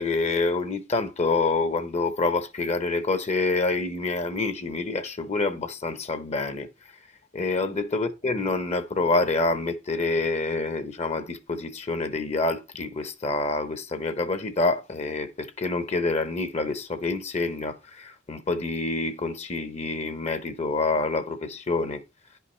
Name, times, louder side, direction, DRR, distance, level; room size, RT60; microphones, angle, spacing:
voice 1, 0.0-6.7 7.3-22.0, left 3 dB, 35° left, 0.8 m, -27 dB
10.5 x 5.7 x 3.1 m
head